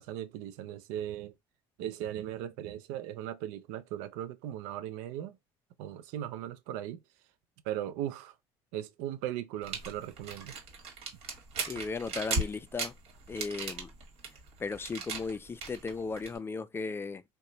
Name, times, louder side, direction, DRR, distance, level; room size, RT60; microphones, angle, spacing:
voice 1, 0.0-1.3 1.8-5.4 5.8-7.0 7.6-8.3 8.7-10.5, right 11 dB, 85° right, 0.5 m, -38 dB
sound 1, 9.6-16.4, right 3 dB, 60° right, 1.5 m, -37 dB
voice 2, 11.7-12.9 13.3-13.9 14.6-17.2, left 4 dB, 20° left, 0.4 m, -36 dB
2.9 x 2.2 x 3.9 m
supercardioid pair, 100°, 12 cm